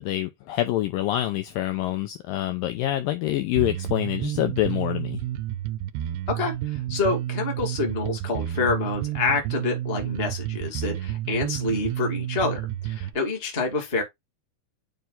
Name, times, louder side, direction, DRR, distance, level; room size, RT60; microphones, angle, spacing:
voice 1, 0.0-5.2, left 14 dB, 80° left, 2.1 m, -26 dB
Bass guitar, 3.6-13.2, right 13 dB, 85° right, 2.6 m, -30 dB
voice 2, 6.3-14.0, left 3 dB, 20° left, 1.6 m, -27 dB
9.3 x 3.3 x 3.9 m
omnidirectional pair, 4.6 m